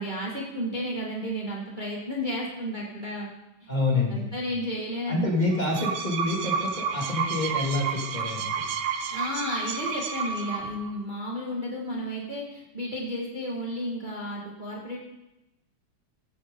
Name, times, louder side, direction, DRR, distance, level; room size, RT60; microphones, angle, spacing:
voice 1, 0.0-3.3 3.6-3.7 4.1-5.3 9.1-15.0, equal, 25° right, -3 dB, 1.7 m, -32 dB
voice 2, 3.7-4.3 5.1-8.5, left 2 dB, 20° left, -3 dB, 2.2 m, -27 dB
sound 1, 5.5-10.9, right 6 dB, 80° right, 1.7 m, -31 dB
14.5 x 9.3 x 3.8 m, 0.94 s
omnidirectional pair, 2.3 m